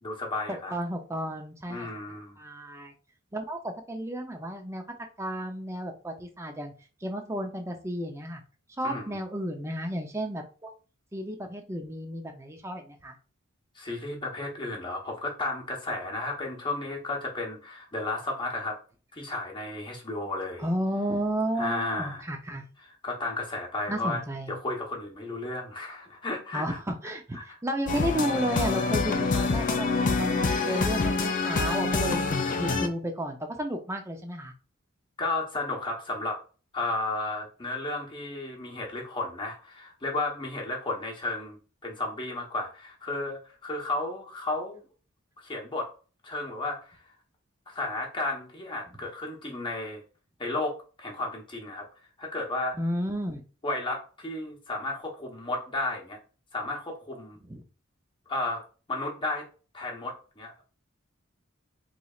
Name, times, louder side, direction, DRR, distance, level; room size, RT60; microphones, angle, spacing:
voice 1, 0.0-0.7 1.7-2.4 8.8-9.2 13.7-18.8 19.1-20.7 21.6-22.3 22.8-24.2 24.5-26.8 27.3-27.6 35.2-36.4 36.7-44.8 45.4-45.9 46.2-47.0 47.7-50.0 50.4-51.8 52.2-52.8 53.6-56.2 56.5-57.4 58.3-59.5 59.7-60.6, left 2 dB, 25° left, 0 dB, 0.9 m, -33 dB
voice 2, 0.7-1.9 2.4-2.9 3.3-4.8 5.2-6.7 7.0-8.4 8.8-10.7 11.1-13.2 20.6-22.7 23.9-24.5 26.5-32.2 32.6-34.5 52.8-53.4 57.4-57.6, equal, 15° right, 4 dB, 0.5 m, -32 dB
sound 1, 27.9-32.9, left 3 dB, 40° left, 0.4 m, -26 dB
4.0 x 3.1 x 2.3 m, 0.36 s
head